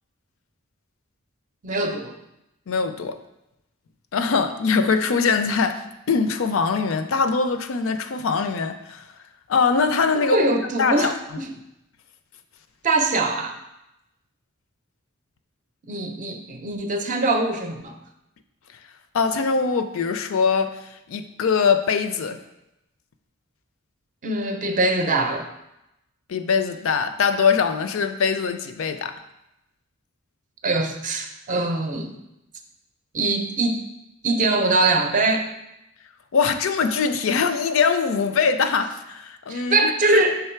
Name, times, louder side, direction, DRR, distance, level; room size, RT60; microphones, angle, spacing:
voice 1, 1.6-2.1 10.3-11.5 12.8-13.5 15.9-17.9 24.2-25.5 30.6-32.1 33.1-33.8 34.2-35.5 39.5-40.4, right 2 dB, 35° right, 5 dB, 0.5 m, -22 dB
voice 2, 2.7-3.2 4.1-9.0 9.5-10.5 10.8-11.4 19.1-22.4 26.3-29.2 36.3-40.2, left 5 dB, 65° left, 9 dB, 0.4 m, -22 dB
5.6 x 3.8 x 4.4 m, 0.88 s
head